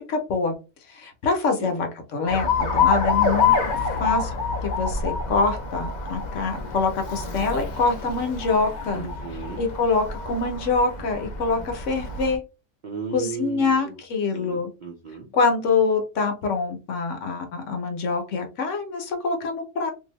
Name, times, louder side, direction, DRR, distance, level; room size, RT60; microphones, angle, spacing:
voice 1, 0.1-0.5 0.9-3.5 4.0-4.3 4.6-9.1 9.6-12.4 13.1-14.7 15.3-19.9, left 4 dB, 65° left, 4 dB, 1.0 m, -25 dB
Alarm, 2.3-12.4, left 5 dB, 90° left, 0.4 m, -26 dB
voice 2, 8.9-9.6 12.8-14.0 14.3-15.3, right 6 dB, 65° right, 1 dB, 0.4 m, -35 dB
2.6 x 2.5 x 3.0 m, 0.30 s
omnidirectional pair, 1.5 m